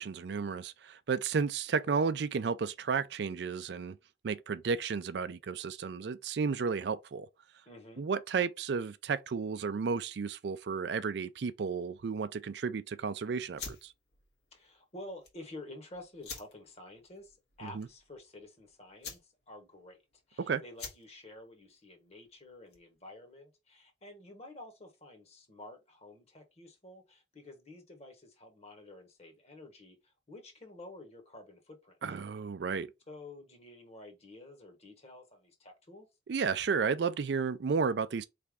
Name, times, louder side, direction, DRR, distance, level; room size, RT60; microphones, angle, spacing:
voice 1, 0.0-4.0 4.2-7.3 8.0-13.9 17.6-17.9 20.5-20.6 32.0-32.9 36.3-38.3, right 5 dB, 65° right, 0.4 m, -33 dB
voice 2, 7.6-8.1 14.5-20.0 20.3-32.0 33.1-36.1, left 2 dB, 35° left, 1.3 m, -50 dB
sound 1, 13.5-23.0, left 4 dB, 65° left, 1.6 m, -49 dB
4.2 x 3.4 x 3.5 m
head